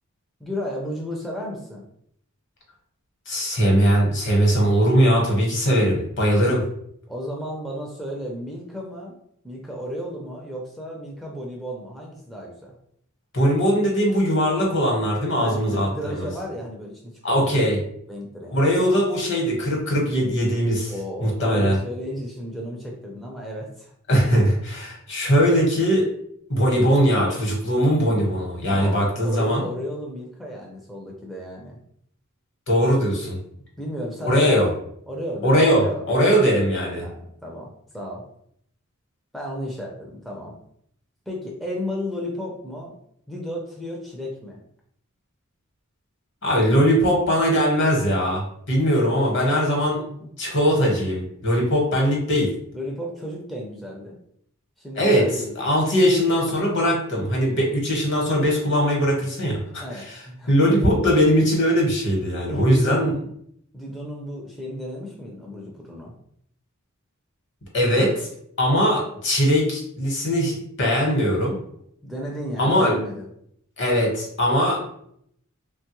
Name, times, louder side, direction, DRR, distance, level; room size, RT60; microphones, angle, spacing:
voice 1, 0.4-1.8 7.1-9.1 9.4-12.7 15.4-17.4 18.1-18.6 20.9-23.9 28.7-31.8 33.8-34.6 35.1-36.4 37.0-37.7 37.9-38.2 39.3-40.6 41.3-43.0 43.3-44.6 49.8-50.3 52.7-54.2 54.8-55.5 59.8-61.0 62.5-63.3 63.7-66.2 72.0-73.3, equal, ahead, -2 dB, 0.4 m, -33 dB
voice 2, 3.3-6.6 13.3-16.3 17.2-17.8 18.5-20.9 21.2-21.7 24.1-26.0 26.5-29.7 32.7-33.4 34.2-34.7 35.4-37.0 46.4-50.0 50.4-52.5 55.0-55.2 55.6-60.2 60.5-63.1 67.7-68.1 68.6-71.6 72.6-73.0 73.8-74.8, equal, 60° left, -1 dB, 1.0 m, -20 dB
3.1 x 2.2 x 2.9 m, 0.70 s
head